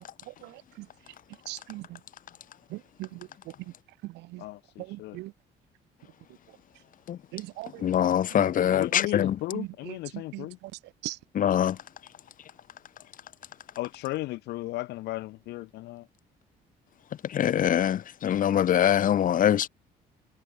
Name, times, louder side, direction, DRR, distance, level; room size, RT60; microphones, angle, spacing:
voice 1, 1.5-1.9 2.7-3.2 4.0-4.4 4.9-5.3 7.3-7.8 8.3-8.5 9.5-10.5 11.0-11.2, right 20 dB, 85° right, 2.5 m, -39 dB
voice 2, 4.4-5.2 8.7-10.6 13.8-16.1, left 18 dB, 85° left, 5.4 m, -35 dB
voice 3, 7.8-9.4 11.3-11.8 17.3-19.7, left 10 dB, 55° left, 2.5 m, -23 dB
cardioid pair, 110°, 17 cm